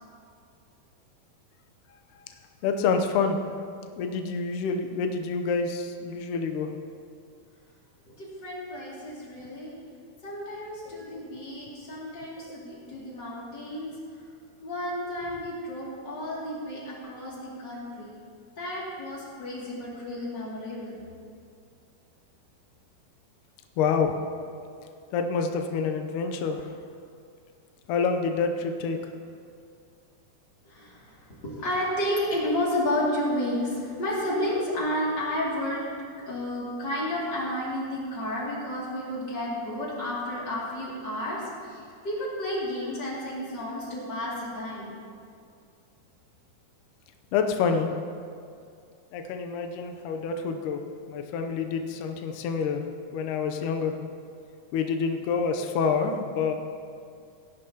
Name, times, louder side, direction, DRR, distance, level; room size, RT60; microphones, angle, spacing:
voice 1, 2.6-3.4 4.0-6.7 10.9-11.0 23.8-24.2 25.1-26.7 27.9-29.0 47.3-47.9 49.1-50.8 51.1-52.8 53.1-53.9 54.7-56.5, left 5 dB, 85° left, 5 dB, 1.8 m, -27 dB
voice 2, 8.1-9.8 10.2-13.9 14.6-18.1 18.6-20.9 30.6-35.9 36.2-45.0, left 1 dB, 30° left, -6 dB, 2.5 m, -31 dB
18.0 x 10.5 x 2.9 m, 2.3 s
omnidirectional pair, 4.6 m